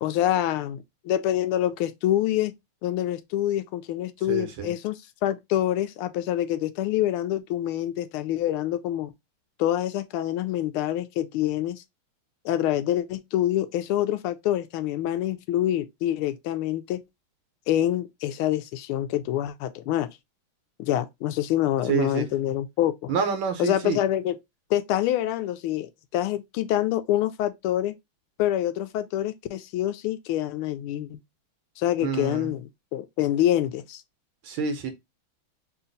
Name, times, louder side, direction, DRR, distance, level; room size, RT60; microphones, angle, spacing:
voice 1, 0.0-2.5 2.8-9.1 9.6-11.8 12.4-17.0 17.7-20.1 20.8-23.1 23.6-24.4 24.7-28.0 28.4-31.2 31.8-34.0, left 12 dB, 85° left, 1.4 m, -26 dB
voice 2, 4.3-4.7 21.9-22.3 23.1-24.0 32.0-32.5 34.4-34.9, right 6 dB, 75° right, 1.5 m, -27 dB
3.9 x 2.4 x 3.8 m
omnidirectional pair, 2.3 m